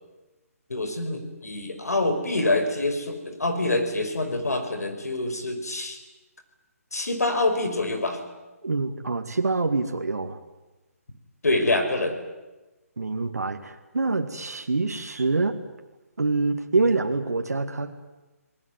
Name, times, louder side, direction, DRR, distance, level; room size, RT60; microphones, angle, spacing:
voice 1, 0.7-6.0 6.9-8.2 11.4-12.1, left 2 dB, 85° left, 7 dB, 5.7 m, -26 dB
voice 2, 8.6-10.4 13.0-15.6 16.2-18.1, right 3 dB, 85° right, 5 dB, 2.1 m, -26 dB
29.5 x 19.5 x 9.4 m, 1.1 s
hypercardioid pair, 150°, 8 cm